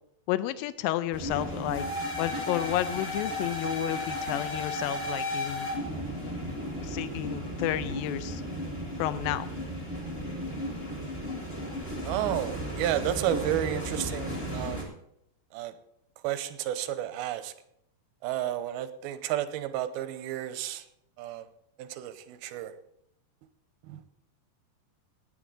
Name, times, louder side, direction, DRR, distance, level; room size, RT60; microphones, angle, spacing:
voice 1, 0.3-1.9 2.2-5.7 6.8-8.4 9.0-9.5, left 13 dB, 80° left, 14 dB, 2.3 m, -31 dB
sound 1, 1.1-14.8, equal, 15° left, 2.6 m, -34 dB
voice 2, 12.0-15.0 15.5-15.7 16.2-17.5 18.2-20.9 21.2-21.5 21.8-22.7 23.9-24.0, right 12 dB, 85° right, 12 dB, 2.6 m, -32 dB
17.5 x 9.6 x 3.8 m, 0.75 s
omnidirectional pair, 4.5 m